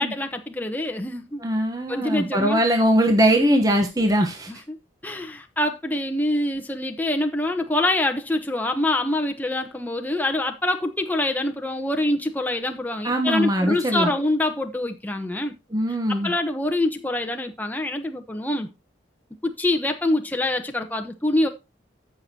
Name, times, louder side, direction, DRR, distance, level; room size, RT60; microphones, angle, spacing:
voice 1, 0.0-1.4 1.9-2.6 4.5-4.8 5.0-15.5 16.1-18.7 19.4-21.5, left 1 dB, 10° left, 1.0 m, -25 dB
voice 2, 1.4-4.5 13.0-14.1 15.7-16.3, equal, 20° right, 1.1 m, -21 dB
14.5 x 6.3 x 2.9 m
head